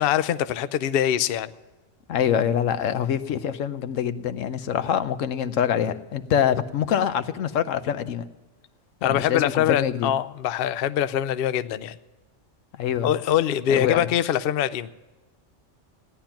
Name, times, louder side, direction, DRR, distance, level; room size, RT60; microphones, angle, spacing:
voice 1, 0.0-1.5 9.0-12.0 13.0-14.9, left 10 dB, 60° left, 13 dB, 0.7 m, -23 dB
voice 2, 2.1-8.2 9.0-10.1 12.8-13.1 13.7-14.1, left 9 dB, 85° left, 11 dB, 1.1 m, -25 dB
16.0 x 10.5 x 5.8 m, 1.2 s
omnidirectional pair, 1.3 m